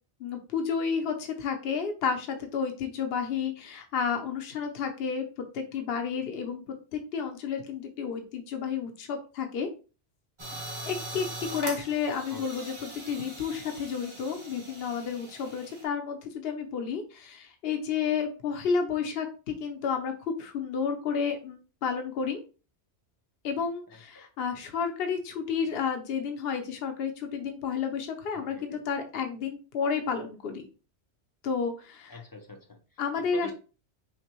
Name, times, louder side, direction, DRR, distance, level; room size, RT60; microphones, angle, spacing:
voice 1, 0.2-5.2 5.5-6.6 6.9-9.7 10.8-11.3 11.5-22.4 23.4-30.7 31.4-32.2 33.0-33.5, left 6 dB, 65° left, 5 dB, 0.9 m, -31 dB
sound 1, 10.4-15.8, right 2 dB, 30° right, 1.0 m, -41 dB
voice 2, 28.3-28.8 32.1-32.8 33.2-33.5, left 2 dB, 30° left, 4 dB, 0.4 m, -44 dB
5.8 x 2.2 x 3.0 m, 0.34 s
omnidirectional pair, 1.1 m